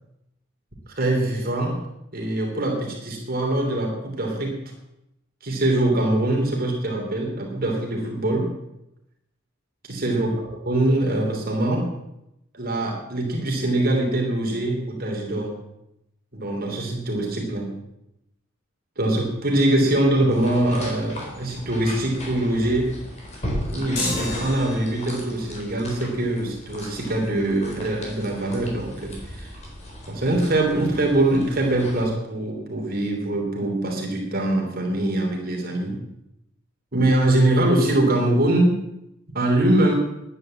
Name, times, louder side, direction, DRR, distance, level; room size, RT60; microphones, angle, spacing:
voice 1, 1.0-1.8 2.1-4.6 5.4-8.5 9.9-11.9 12.5-15.6 16.3-17.7 19.0-23.0 23.7-29.5 30.1-36.0 36.9-38.8 39.3-39.9, right 1 dB, 50° right, 0 dB, 3.2 m, -23 dB
sound 1, 20.3-32.0, equal, 35° left, 4.1 m, -37 dB
sound 2, 24.0-25.3, left 2 dB, 55° left, 4.4 m, -30 dB
11.5 x 10.0 x 7.8 m, 0.85 s
head